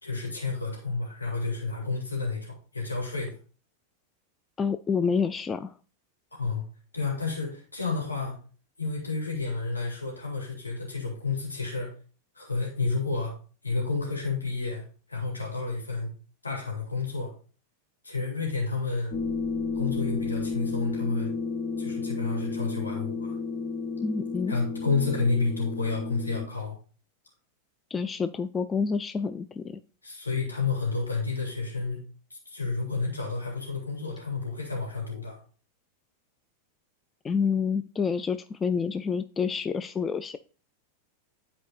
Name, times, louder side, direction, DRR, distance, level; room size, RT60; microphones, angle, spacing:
voice 1, 0.0-3.4 6.3-6.6 6.9-8.4 8.8-11.9 12.3-13.3 13.6-16.1 16.4-17.3 18.0-19.1 19.7-21.3 21.8-23.3 24.5-26.8 30.0-32.0 32.3-35.4, left 4 dB, 80° left, -1 dB, 2.4 m, -30 dB
voice 2, 4.6-5.7 24.0-24.6 27.9-29.8 37.2-40.4, left 5 dB, 20° left, 10 dB, 0.3 m, -28 dB
sound 1, 19.1-26.5, left 4 dB, 35° left, 0.7 m, -32 dB
11.0 x 4.3 x 2.5 m, 0.38 s
figure-of-eight pair, 90°, 0 cm